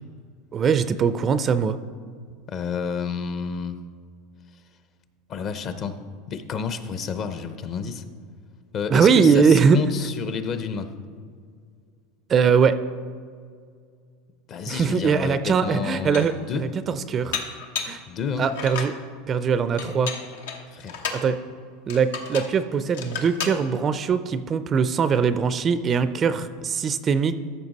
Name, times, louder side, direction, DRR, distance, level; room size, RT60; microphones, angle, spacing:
voice 1, 0.5-1.8 8.9-9.8 12.3-12.8 14.7-17.4 17.8-18.0 18.4-18.9 19.3-20.1 21.1-21.4 21.9-27.4, right 6 dB, 30° right, 13 dB, 0.4 m, -21 dB
voice 2, 2.5-3.7 5.3-8.0 8.7-10.9 14.5-16.6 18.1-18.5 20.7-21.0, left 6 dB, 40° left, 10 dB, 0.6 m, -30 dB
Dishes pots and pans, 15.2-15.3 15.8-16.4 17.3-18.0 18.5-19.0 19.8-21.3 21.9-22.6 22.9-23.6, left 5 dB, 85° left, 1.0 m, -33 dB
13.5 x 5.7 x 4.1 m, 2.1 s
supercardioid pair, 130°, 0 cm